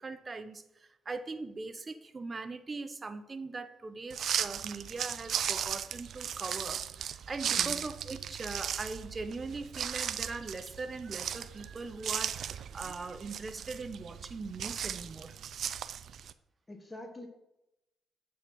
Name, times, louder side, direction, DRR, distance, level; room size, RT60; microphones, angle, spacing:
voice 1, 0.0-15.4, right 3 dB, 30° right, 10 dB, 0.7 m, -41 dB
sound 1, 4.1-16.3, right 8 dB, 65° right, 0.4 m, -36 dB
voice 2, 16.7-17.3, left 2 dB, 15° left, 3 dB, 1.1 m, -45 dB
7.9 x 4.7 x 5.5 m, 0.89 s
cardioid pair, 100°, 0 cm